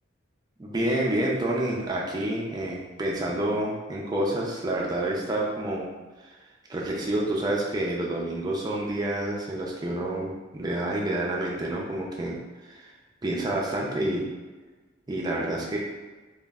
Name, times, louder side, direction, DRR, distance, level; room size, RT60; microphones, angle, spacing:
voice 1, 0.6-5.9 6.7-12.9 13.2-14.3 15.1-15.8, right 1 dB, 20° right, -3 dB, 0.4 m, -28 dB
2.4 x 2.0 x 3.4 m, 1.3 s
head